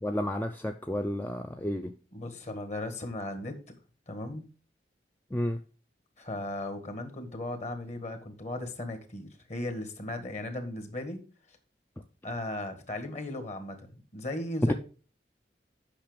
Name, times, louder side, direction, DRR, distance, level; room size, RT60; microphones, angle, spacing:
voice 1, 0.0-2.0 5.3-5.6, left 1 dB, 10° left, 0.5 m, -32 dB
voice 2, 2.1-3.7 4.1-4.5 6.2-11.2 12.2-14.7, left 1 dB, 40° left, 1.7 m, -37 dB
8.8 x 5.8 x 5.1 m
head